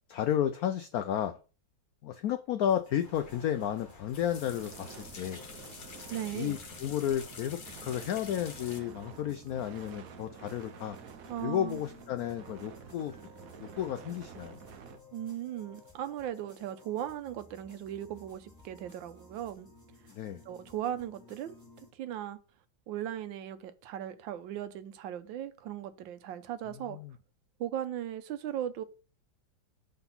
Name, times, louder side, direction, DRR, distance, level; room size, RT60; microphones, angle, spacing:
voice 1, 0.1-1.4 2.0-4.9 5.2-5.5 6.3-11.0 11.4-13.1 13.6-14.6 20.1-20.4 26.9-27.1, left 10 dB, 85° left, 0.8 m, -32 dB
sound 1, 2.7-21.9, left 3 dB, 10° left, 1.9 m, -57 dB
sound 2, 3.0-8.8, left 4 dB, 55° left, 0.5 m, -48 dB
sound 3, 4.4-15.0, right 7 dB, 60° right, 0.9 m, -50 dB
voice 2, 6.1-6.6 11.3-11.8 15.1-19.7 20.5-21.6 21.9-22.4 22.9-27.0 27.6-28.8, right 11 dB, 80° right, 1.3 m, -37 dB
5.9 x 3.9 x 5.5 m
omnidirectional pair, 2.1 m